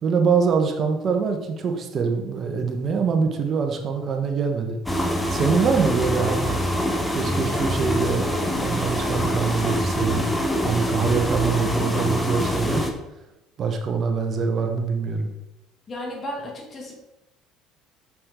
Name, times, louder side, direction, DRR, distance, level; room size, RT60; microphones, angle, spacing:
voice 1, 0.0-4.8 5.3-6.6 7.1-8.3 8.5-10.2 10.6-12.9 13.6-15.3, right 5 dB, 45° right, 4 dB, 1.3 m, -24 dB
sound 1, 4.9-12.9, equal, 10° left, 1.1 m, -25 dB
voice 2, 15.9-16.9, left 1 dB, 35° left, 0 dB, 2.1 m, -33 dB
6.5 x 6.0 x 3.8 m, 0.93 s
supercardioid pair, 85°, 0 cm